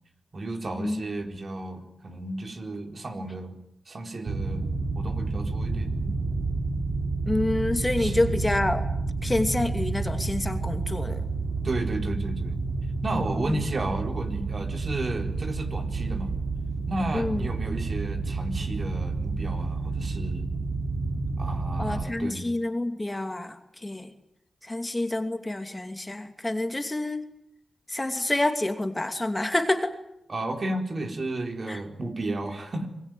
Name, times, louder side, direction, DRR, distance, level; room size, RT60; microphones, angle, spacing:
voice 1, 0.3-3.6 3.9-4.6 4.9-6.0 8.0-8.4 11.6-12.6 13.0-16.3 16.9-20.5 21.4-22.5 30.3-32.9, right 2 dB, 50° right, 4 dB, 4.3 m, -33 dB
sound 1, 4.3-22.0, right 3 dB, 75° right, 3.5 m, -30 dB
voice 2, 7.3-8.8 9.2-11.3 13.5-13.6 17.1-17.5 21.8-24.1 24.6-27.2 27.9-30.0 31.7-31.8, left 1 dB, 20° left, 6 dB, 2.7 m, -28 dB
26.5 x 21.0 x 9.3 m, 0.81 s
cardioid pair, 75°, 0 cm